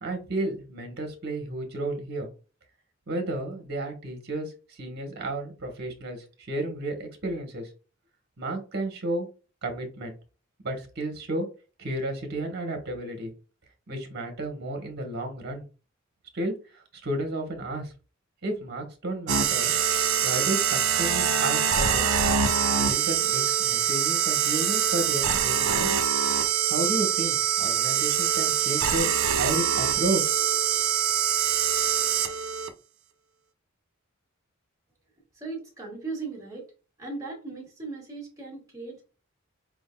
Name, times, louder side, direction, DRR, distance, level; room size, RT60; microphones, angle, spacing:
voice 1, 0.0-2.3 3.1-7.7 8.4-9.3 9.6-10.1 10.6-11.5 11.8-13.3 13.9-15.6 16.3-17.9 18.4-19.7 20.2-22.1 22.8-26.0 26.7-30.2, right 1 dB, 55° right, 4 dB, 1.1 m, -32 dB
sound 1, 19.3-32.7, right 8 dB, 85° right, 0.6 m, -24 dB
voice 2, 35.3-36.7 37.0-39.0, right 3 dB, 15° right, -1 dB, 1.6 m, -37 dB
4.8 x 3.6 x 2.2 m, 0.34 s
head